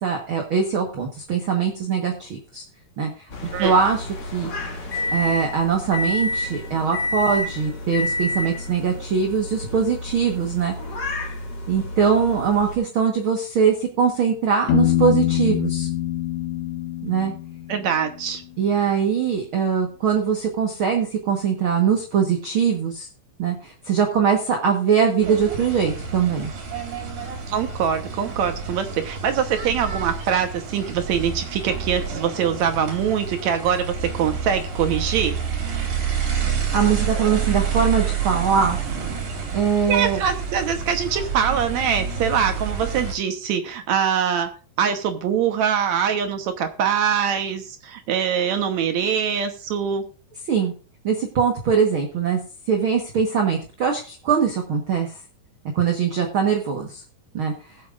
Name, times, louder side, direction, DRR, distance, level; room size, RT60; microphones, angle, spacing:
voice 1, 0.0-2.6 3.0-3.1 3.6-4.1 4.3-4.5 5.1-10.7 11.7-15.9 17.0-17.3 18.6-23.1 23.4-26.5 36.7-38.8 39.5-40.2 50.5-50.7 51.0-52.4 52.7-55.1 55.7-57.0 57.3-57.5, right 6 dB, 50° right, 2 dB, 1.7 m, -22 dB
sound 1, 3.3-12.7, left 2 dB, 35° left, 2.5 m, -29 dB
Piano, 14.7-18.4, left 12 dB, 65° left, 2.2 m, -24 dB
voice 2, 17.7-18.4 27.5-35.3 39.9-44.5 44.8-50.0, right 8 dB, 65° right, 7 dB, 2.1 m, -23 dB
sound 2, 25.2-43.1, right 6 dB, 85° right, 4.2 m, -28 dB
20.5 x 7.6 x 2.5 m, 0.39 s
omnidirectional pair, 3.9 m